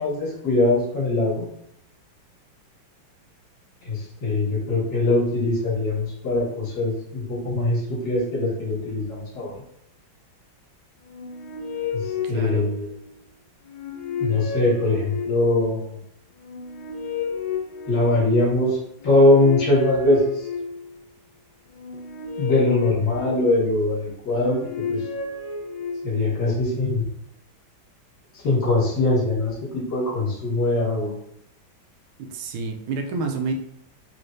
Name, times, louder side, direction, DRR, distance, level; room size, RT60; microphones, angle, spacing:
voice 1, 0.0-1.4 3.8-9.5 11.9-12.9 14.2-15.9 17.9-18.8 19.0-20.5 22.4-24.6 24.9-25.0 26.0-27.1 28.4-31.1, left 2 dB, 40° left, -6 dB, 1.7 m, -22 dB
sound 1, 11.0-13.2 13.6-15.7 16.4-18.5 19.0-21.0 21.7-23.8 24.3-26.3, left 5 dB, 75° left, 1.3 m, -32 dB
voice 2, 12.2-12.7 32.2-33.5, right 4 dB, 85° right, 5 dB, 1.4 m, -29 dB
3.6 x 3.2 x 2.6 m, 0.75 s
omnidirectional pair, 2.2 m